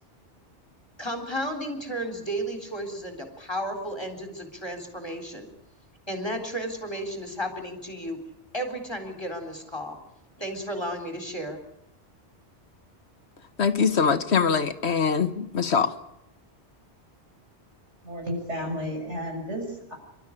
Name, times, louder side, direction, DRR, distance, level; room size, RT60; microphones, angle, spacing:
voice 1, 1.0-5.5 6.1-8.2 8.5-10.0 10.4-11.6, equal, 20° left, 4 dB, 3.8 m, -33 dB
voice 2, 13.6-15.9, left 6 dB, 65° left, 11 dB, 1.5 m, -23 dB
voice 3, 18.0-19.9, equal, 80° right, 1 dB, 7.1 m, -32 dB
27.5 x 13.0 x 9.9 m, 0.81 s
omnidirectional pair, 1.2 m